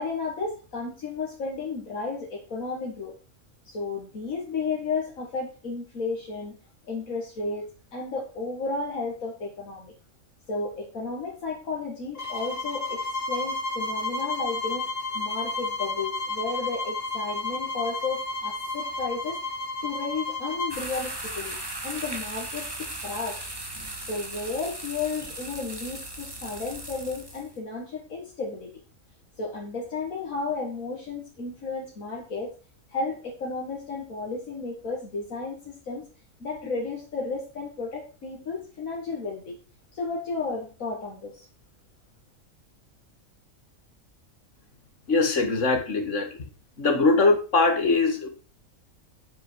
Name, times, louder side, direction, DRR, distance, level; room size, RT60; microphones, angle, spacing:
voice 1, 0.0-3.2 3.6-6.6 6.9-9.9 10.5-13.0 13.3-14.9 15.1-19.4 19.8-21.6 21.8-23.5 24.0-28.7 29.4-32.6 32.9-36.1 36.4-39.6 39.9-41.5, left 4 dB, 80° left, -3 dB, 2.3 m, -33 dB
sound 1, 12.1-20.8, left 2 dB, 45° left, 2.3 m, -31 dB
sound 2, 20.7-27.5, right 1 dB, 20° right, 1.5 m, -37 dB
voice 2, 45.1-46.3 46.8-48.3, left 3 dB, 60° left, 6 dB, 2.0 m, -22 dB
8.6 x 8.0 x 4.6 m, 0.34 s
omnidirectional pair, 1.4 m